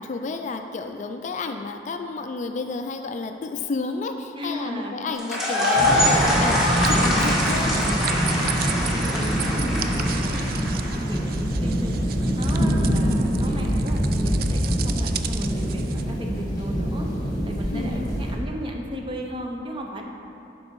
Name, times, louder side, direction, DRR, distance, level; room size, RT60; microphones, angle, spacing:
voice 1, 0.0-7.9 17.7-18.1, left 3 dB, 40° left, 6 dB, 0.3 m, -31 dB
voice 2, 4.4-4.9 8.8-11.9 12.4-17.1 17.4-20.0, equal, 30° right, 1 dB, 0.7 m, -35 dB
sound 1, 5.2-11.2, left 1 dB, 5° right, 1.3 m, -24 dB
sound 2, 5.7-18.3, equal, 20° left, 1.3 m, -25 dB
sound 3, 6.8-16.0, right 10 dB, 50° right, 0.3 m, -35 dB
7.9 x 5.2 x 4.6 m, 2.8 s
head